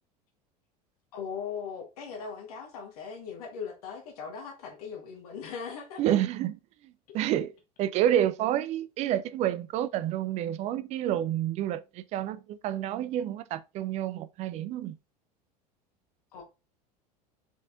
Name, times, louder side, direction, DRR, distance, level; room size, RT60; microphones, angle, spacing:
voice 1, 1.1-6.0 16.3-16.4, left 6 dB, 60° left, 1.3 m, -39 dB
voice 2, 6.0-6.6 6.8-15.0, right 11 dB, 35° right, 0.4 m, -29 dB
5.1 x 4.0 x 2.5 m
figure-of-eight pair, 75°, 21 cm